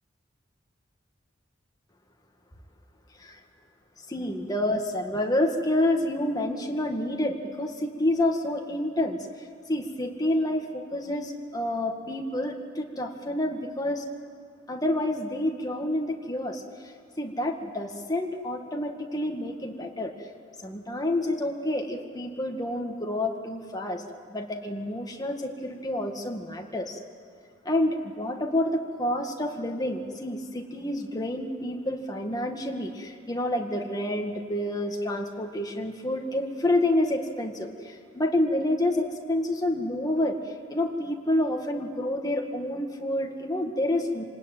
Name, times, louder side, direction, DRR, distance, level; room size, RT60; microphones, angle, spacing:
voice 1, 4.1-9.2 9.7-14.1 14.7-16.6 17.2-20.1 20.6-24.0 24.3-27.0 27.7-40.4 40.7-44.2, left 1 dB, 20° left, 2 dB, 2.0 m, -28 dB
27.5 x 19.5 x 9.1 m, 2.1 s
head